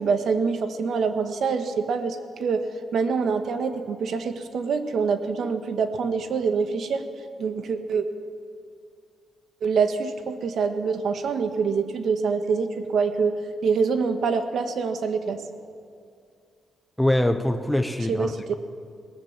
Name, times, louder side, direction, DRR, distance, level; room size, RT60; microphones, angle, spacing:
voice 1, 0.0-2.6 2.9-7.0 7.4-8.0 9.6-15.4 18.1-18.5, right 5 dB, 60° right, 7 dB, 1.6 m, -25 dB
voice 2, 17.0-18.5, left 1 dB, ahead, 6 dB, 0.8 m, -23 dB
21.5 x 19.0 x 7.5 m, 2.3 s
cardioid pair, 150°, 0 cm